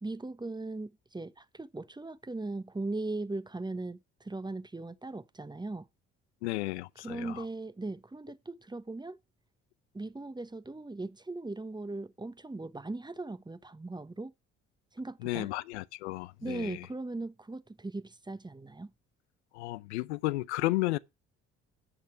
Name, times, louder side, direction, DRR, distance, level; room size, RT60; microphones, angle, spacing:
voice 1, 0.0-5.9 7.0-9.2 9.9-14.3 14.9-15.5 16.4-18.9, right 2 dB, 15° right, 1.1 m, -39 dB
voice 2, 6.4-7.4 15.2-16.9 19.5-21.0, left 19 dB, 85° left, 0.7 m, -33 dB
11.0 x 8.5 x 4.6 m
hypercardioid pair, 55°, 33 cm